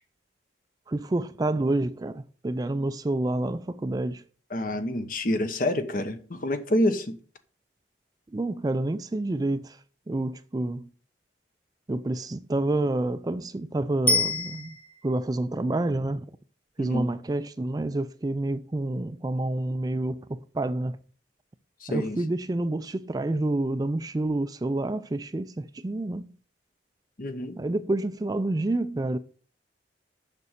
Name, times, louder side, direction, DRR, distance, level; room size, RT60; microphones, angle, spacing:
voice 1, 0.9-4.2 8.3-9.8 10.1-10.9 11.9-14.8 15.0-16.3 16.8-21.0 21.9-26.3 27.6-29.2, right 2 dB, 20° right, 0.3 m, -28 dB
voice 2, 4.5-7.1 16.8-17.1 21.8-22.2 27.2-27.6, left 1 dB, 50° left, 1.0 m, -27 dB
Bicycle bell, 14.1-15.2 24.3-24.4, left 2 dB, 10° left, 1.3 m, -26 dB
6.9 x 6.1 x 6.5 m
head